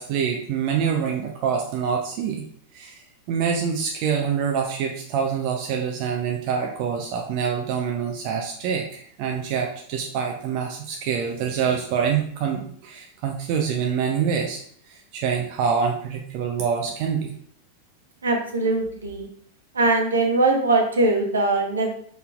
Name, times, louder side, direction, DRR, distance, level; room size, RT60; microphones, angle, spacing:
voice 1, 0.0-2.4 2.7-3.0 3.3-14.6 14.9-17.3, right 7 dB, 45° right, 1 dB, 0.6 m, -26 dB
voice 2, 18.2-19.3 19.7-21.9, right 2 dB, 70° right, 3 dB, 0.9 m, -21 dB
5.4 x 4.1 x 2.4 m, 0.62 s
figure-of-eight pair, 90°, 0 cm